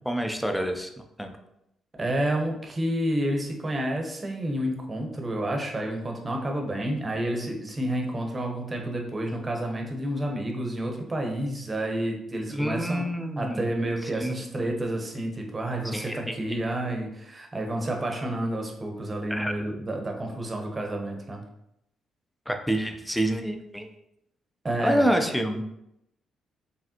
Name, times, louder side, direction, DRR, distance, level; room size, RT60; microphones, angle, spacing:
voice 1, 0.0-0.9 1.2-1.3 12.5-13.7 14.1-14.5 15.9-16.6 19.3-19.5 22.5-23.9 24.8-25.7, equal, ahead, 5 dB, 0.5 m, -27 dB
voice 2, 2.0-13.1 13.4-21.4 24.6-25.1, right 1 dB, 25° right, 2 dB, 0.9 m, -30 dB
4.9 x 3.2 x 2.9 m, 0.82 s
cardioid pair, 90°, 0 cm